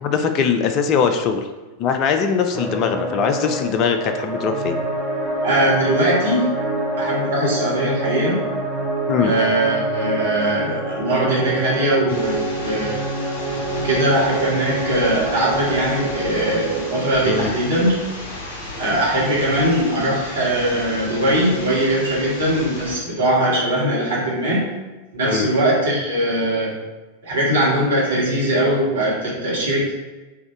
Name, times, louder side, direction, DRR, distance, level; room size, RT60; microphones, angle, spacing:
voice 1, 0.0-1.4 1.8-4.7 6.0-6.2 9.1-9.3 17.3-17.5 25.3-25.5, left 6 dB, 35° left, 6 dB, 0.3 m, -21 dB
sound 1, 2.5-17.0, right 2 dB, ahead, 0.8 m, -26 dB
voice 2, 5.4-6.5 7.0-8.5 9.2-13.0 13.8-17.9 18.8-24.7 25.2-26.7 27.2-29.9, right 1 dB, 65° right, -5 dB, 1.5 m, -20 dB
sound 2, 12.1-23.0, left 2 dB, 60° left, 1.3 m, -34 dB
3.5 x 2.6 x 4.5 m, 1.2 s
figure-of-eight pair, 90°, 0 cm